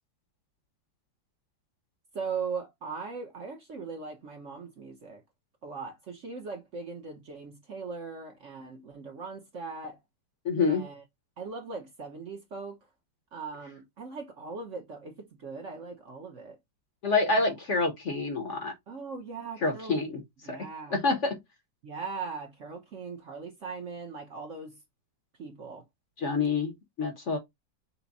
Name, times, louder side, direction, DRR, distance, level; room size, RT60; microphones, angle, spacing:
voice 1, 2.1-5.2 5.6-10.0 10.6-11.0 11.4-12.8 13.3-16.6 18.9-20.0 20.4-21.0 21.8-24.8 25.4-25.8, right 4 dB, 50° right, 1.1 m, -39 dB
voice 2, 10.4-10.8 17.0-18.7 19.6-20.2 20.5-20.6 20.9-21.4 26.2-26.7 27.0-27.4, left 3 dB, 45° left, 1.2 m, -27 dB
5.9 x 2.2 x 4.0 m
omnidirectional pair, 2.0 m